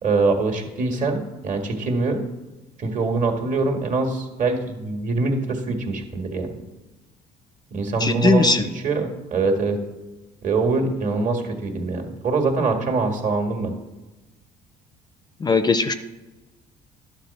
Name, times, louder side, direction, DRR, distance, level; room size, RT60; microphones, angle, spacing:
voice 1, 0.0-2.2 2.8-6.6 7.7-9.8 10.4-13.7, right 3 dB, 50° right, 3 dB, 1.7 m, -24 dB
voice 2, 8.0-8.6 15.4-15.9, left 3 dB, 25° left, 11 dB, 0.5 m, -18 dB
11.0 x 4.1 x 7.0 m, 1.1 s
cardioid pair, 110°, 17 cm